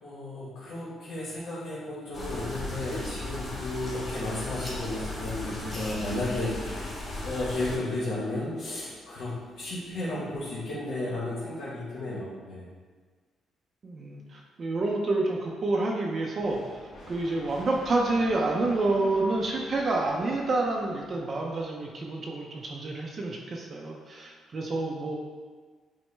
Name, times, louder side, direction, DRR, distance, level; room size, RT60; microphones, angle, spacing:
voice 1, 0.0-12.7, left 2 dB, 80° left, -8 dB, 1.1 m, -33 dB
sound 1, 2.1-7.8, left 2 dB, 50° left, 1.2 m, -36 dB
sound 2, 4.6-10.7, left 1 dB, 20° left, 1.4 m, -50 dB
voice 2, 13.8-16.6 17.1-25.2, right 2 dB, 45° right, -1 dB, 0.5 m, -28 dB
sound 3, 16.4-22.0, left 1 dB, 65° left, 1.5 m, -48 dB
6.1 x 2.1 x 3.2 m, 1.5 s
cardioid pair, 90°, 0 cm